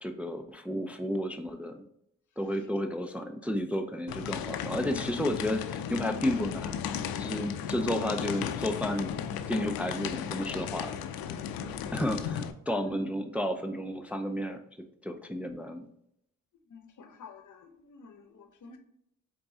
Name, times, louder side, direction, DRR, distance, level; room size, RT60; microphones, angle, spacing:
voice 1, 0.0-1.8 2.4-6.7 7.1-9.1 9.5-10.9 11.9-14.6 15.0-15.9, equal, 5° right, 0.4 m, -32 dB
sound 1, 4.1-12.5, left 8 dB, 80° left, 0.5 m, -35 dB
voice 2, 11.6-12.0 16.7-18.8, left 5 dB, 60° left, 0.8 m, -51 dB
4.5 x 3.6 x 2.7 m
cardioid pair, 60°, 35 cm